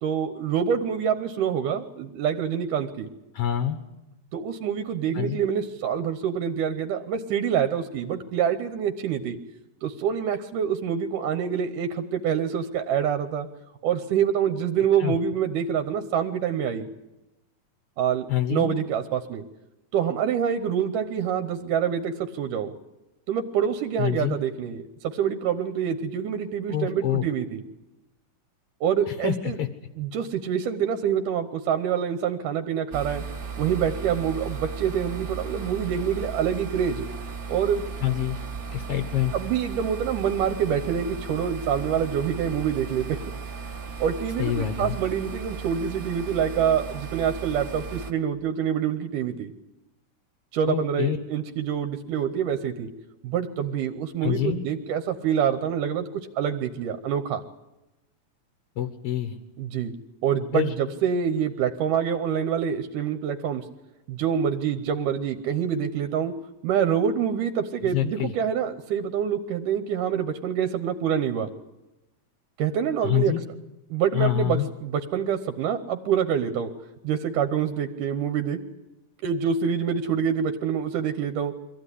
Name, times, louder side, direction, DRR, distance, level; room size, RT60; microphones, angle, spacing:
voice 1, 0.0-3.1 4.3-9.4 9.8-13.5 13.8-16.9 18.0-19.4 19.9-22.7 23.3-27.6 28.8-29.6 30.0-33.2 33.6-37.0 37.5-37.9 39.3-43.2 44.0-49.5 50.5-52.9 53.2-57.4 59.6-59.9 60.2-63.6 64.1-66.3 66.6-71.5 72.6-73.3 73.9-76.7 77.0-78.6 79.2-81.5, right 8 dB, 70° right, 7 dB, 2.4 m, -26 dB
voice 2, 3.3-3.8 5.1-5.4 15.0-15.1 18.3-18.7 24.0-24.4 26.7-27.2 29.1-29.7 38.0-38.4 38.7-39.3 44.4-45.0 50.7-51.2 54.2-54.6 58.7-59.4 60.5-60.7 67.8-68.3 73.0-73.4 74.1-74.7, left 11 dB, 65° left, 7 dB, 1.5 m, -26 dB
sound 1, 32.9-48.1, right 5 dB, 40° right, 1.4 m, -36 dB
23.5 x 15.0 x 9.9 m, 1.0 s
omnidirectional pair, 4.1 m